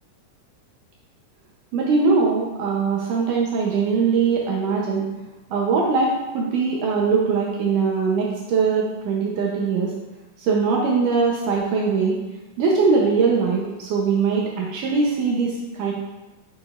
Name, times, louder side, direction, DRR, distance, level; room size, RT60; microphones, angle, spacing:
voice 1, 1.7-5.0 5.5-9.9 10.4-12.2 12.6-15.9, right 4 dB, 75° right, -2 dB, 2.2 m, -21 dB
6.8 x 6.2 x 2.4 m, 1.1 s
omnidirectional pair, 3.9 m